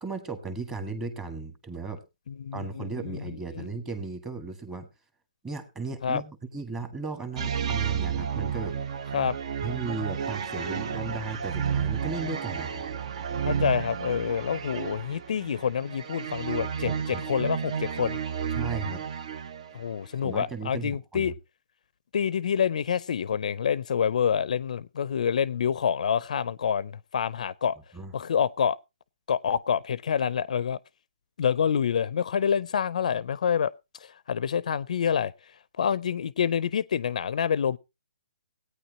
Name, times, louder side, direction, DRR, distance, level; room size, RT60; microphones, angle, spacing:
voice 1, 0.0-2.0 2.5-4.9 5.4-8.8 9.6-12.9 16.8-17.2 18.5-19.0 20.2-21.3 27.9-28.1, right 4 dB, 10° right, 1.6 m, -36 dB
voice 2, 2.3-3.2 3.5-3.7 6.0-6.2 9.1-9.4 13.5-16.9 17.3-18.2 19.7-21.3 22.1-27.8 28.1-28.8 29.3-30.8 31.4-33.7 34.3-35.3 35.8-37.8, left 7 dB, 60° left, 0.5 m, -27 dB
sound 1, 7.4-19.9, right 7 dB, 45° right, 0.9 m, -32 dB
17.0 x 9.3 x 2.9 m
hypercardioid pair, 155°, 4 cm